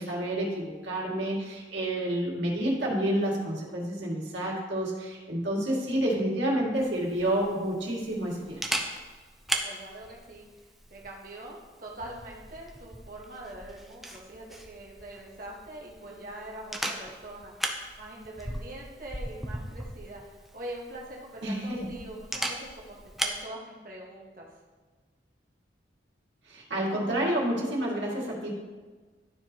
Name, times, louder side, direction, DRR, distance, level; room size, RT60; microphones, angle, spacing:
voice 1, 0.0-8.8 21.4-21.9 26.5-28.5, right 1 dB, 85° right, -4 dB, 2.0 m, -29 dB
Camera, 6.7-23.4, right 1 dB, ahead, 0.5 m, -38 dB
voice 2, 9.6-10.6 10.9-17.7 18.0-24.6, right 1 dB, 50° right, -3 dB, 1.3 m, -43 dB
12.0 x 4.4 x 2.9 m, 1.4 s
head